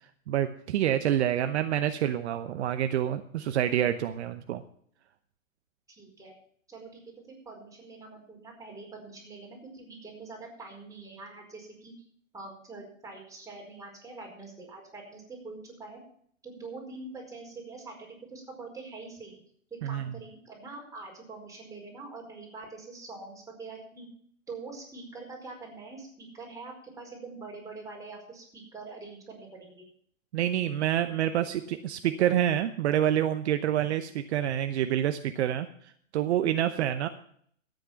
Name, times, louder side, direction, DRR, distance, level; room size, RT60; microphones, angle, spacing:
voice 1, 0.3-4.6 19.8-20.1 30.3-37.1, right 11 dB, 55° right, 9 dB, 0.9 m, -27 dB
voice 2, 5.9-6.3 6.7-7.0 7.3-11.9 12.3-16.0 16.4-19.3 19.8-24.1 24.5-29.9, right 3 dB, 10° right, -1 dB, 4.9 m, -44 dB
13.0 x 9.1 x 5.8 m, 0.62 s
hypercardioid pair, 115°, 39 cm